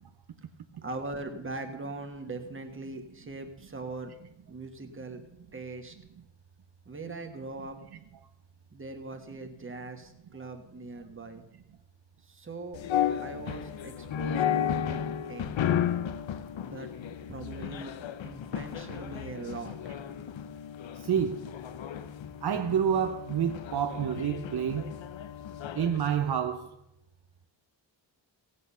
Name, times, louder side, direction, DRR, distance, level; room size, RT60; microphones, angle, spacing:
voice 1, 0.8-4.1 4.5-5.2 5.5-5.9 6.8-7.8 8.7-11.4 12.2-12.8 13.2-15.0 15.3-15.6 16.6-16.9 17.3-17.9 18.2-19.8, right 3 dB, 30° right, 1.5 m, -41 dB
sound 1, 12.7-26.0, left 9 dB, 85° left, 0.8 m, -33 dB
voice 2, 20.9-21.4 22.4-24.9 25.8-26.8, right 8 dB, 60° right, 0.7 m, -28 dB
17.0 x 8.6 x 5.6 m
wide cardioid pair, 165°, 44 cm